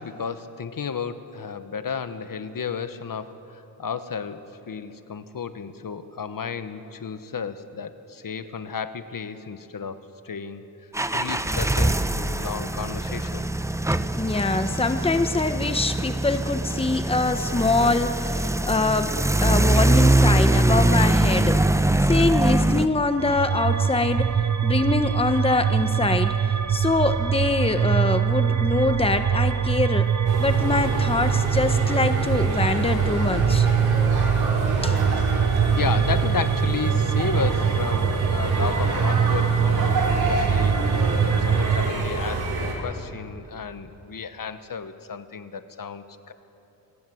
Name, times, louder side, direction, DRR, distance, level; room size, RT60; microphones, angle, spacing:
voice 1, 0.0-10.6 11.1-13.5 35.7-40.0 40.3-40.8 41.2-46.3, left 6 dB, 60° left, 10 dB, 1.2 m, -33 dB
sound 1, 10.9-22.9, right 1 dB, 10° right, 0.6 m, -22 dB
voice 2, 13.9-21.6 22.0-24.4 24.6-30.1 30.4-33.7 34.8-35.0, left 3 dB, 15° left, 9 dB, 1.0 m, -24 dB
sound 2, 23.2-41.9, right 7 dB, 45° right, 0.9 m, -23 dB
sound 3, 30.3-42.7, right 1 dB, 80° right, 5.1 m, -28 dB
27.0 x 19.5 x 7.8 m, 2.9 s
wide cardioid pair, 115°, 37 cm